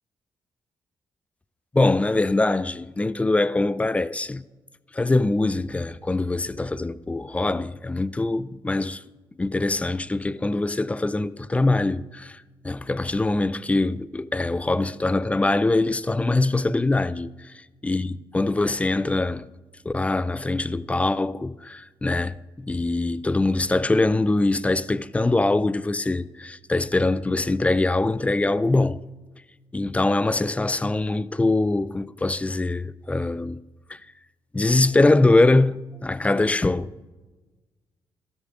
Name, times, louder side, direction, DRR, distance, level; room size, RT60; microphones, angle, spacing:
voice 1, 1.7-4.4 4.9-9.0 9.4-17.5 17.8-19.5 19.9-29.0 29.7-33.6 33.9-34.0 34.5-36.9, left 2 dB, 15° left, 0.4 m, -23 dB
13.0 x 13.0 x 2.6 m
cardioid pair, 80°, 9 cm